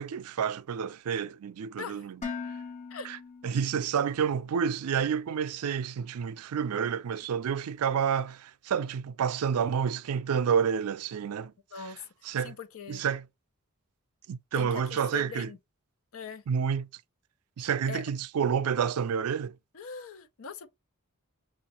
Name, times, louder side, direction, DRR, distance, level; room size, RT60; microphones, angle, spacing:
voice 1, 0.0-2.2 3.0-3.2 3.4-11.5 12.3-12.5 12.9-13.2 14.3-15.5 16.5-16.9 17.6-19.6, right 7 dB, 90° right, 0.4 m, -29 dB
Dishes pots and pans, 2.2-4.3, left 5 dB, 30° left, 0.8 m, -40 dB
voice 2, 12.4-13.0 14.5-15.6 16.1-16.4 17.6-18.0 19.7-20.7, left 5 dB, 65° left, 0.5 m, -41 dB
6.1 x 2.4 x 2.9 m
head